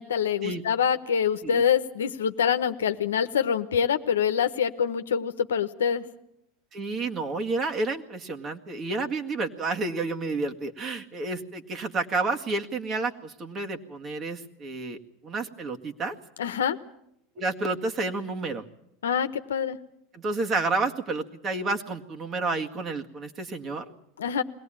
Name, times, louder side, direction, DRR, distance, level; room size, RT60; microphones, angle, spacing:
voice 1, 0.0-6.0 16.4-16.8 19.0-19.8 24.2-24.4, left 8 dB, 90° left, 10 dB, 1.0 m, -25 dB
voice 2, 6.7-16.2 17.4-18.6 20.1-23.9, right 3 dB, 35° right, 5 dB, 2.0 m, -30 dB
22.0 x 18.0 x 9.0 m, 0.78 s
hypercardioid pair, 90°, 0 cm